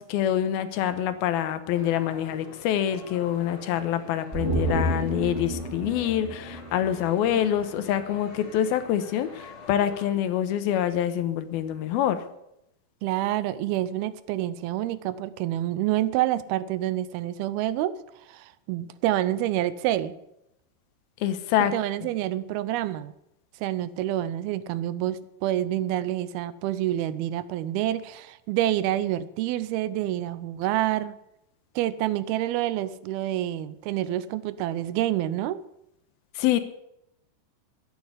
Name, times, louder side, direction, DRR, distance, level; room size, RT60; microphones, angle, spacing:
voice 1, 0.0-12.2 21.2-21.7 36.4-36.6, left 10 dB, 90° left, 11 dB, 2.9 m, -26 dB
sound 1, 1.7-10.1, left 4 dB, 35° left, 3.8 m, -46 dB
sound 2, 4.3-7.7 8.0-8.1, right 1 dB, 10° right, 1.1 m, -31 dB
voice 2, 13.0-18.0 18.3-20.1 21.6-23.1 23.6-31.2 31.8-35.6, right 13 dB, 90° right, 16 dB, 2.7 m, -27 dB
12.5 x 10.5 x 8.2 m, 0.83 s
omnidirectional pair, 4.3 m